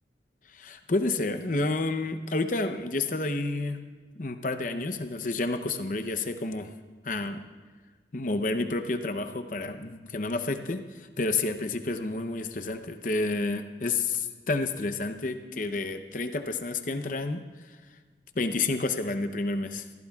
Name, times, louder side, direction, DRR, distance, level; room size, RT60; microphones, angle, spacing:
voice 1, 0.5-3.8 4.2-6.7 7.0-7.4 8.1-17.4 18.4-19.9, left 3 dB, 45° left, 8 dB, 0.8 m, -30 dB
20.5 x 15.5 x 2.4 m, 1.4 s
head